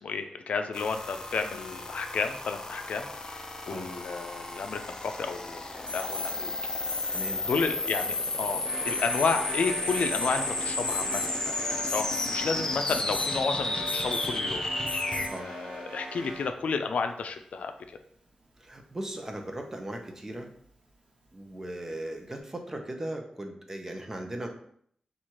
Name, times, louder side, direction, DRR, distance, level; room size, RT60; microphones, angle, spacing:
voice 1, 0.0-6.5 7.0-14.7 15.4-17.7, left 5 dB, 85° left, 7 dB, 0.4 m, -32 dB
sound 1, 0.7-15.3, left 2 dB, 30° left, 0.5 m, -33 dB
Alarm, 5.9-6.3 6.9-7.3 7.9-8.3 8.9-9.3 9.9-10.4 10.9-11.3 11.9-12.3 12.9-13.3 13.9-14.4 14.9-15.4 17.1-17.2, left 3 dB, 55° right, 1.2 m, -37 dB
voice 2, 7.1-7.4 15.2-15.5 18.6-20.5 21.3-24.5, right 1 dB, 20° right, 4 dB, 0.6 m, -38 dB
sound 2, 8.6-16.4, right 1 dB, 75° right, 1.1 m, -40 dB
4.3 x 2.4 x 4.5 m, 0.64 s
wide cardioid pair, 130°, 2 cm